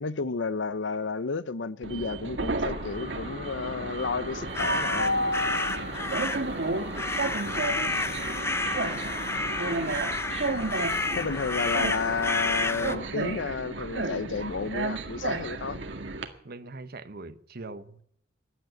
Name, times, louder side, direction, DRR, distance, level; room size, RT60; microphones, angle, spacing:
voice 1, 0.0-5.2 11.2-15.8, left 4 dB, 85° left, 0.7 m, -31 dB
Train, 1.8-16.2, right 2 dB, 75° right, 1.8 m, -32 dB
sound 1, 2.7-13.4, left 2 dB, 40° left, 4.3 m, -43 dB
sound 2, 4.5-13.0, left 3 dB, 15° left, 0.7 m, -31 dB
voice 2, 16.4-18.0, right 2 dB, 55° right, 1.0 m, -41 dB
15.5 x 10.5 x 7.8 m
head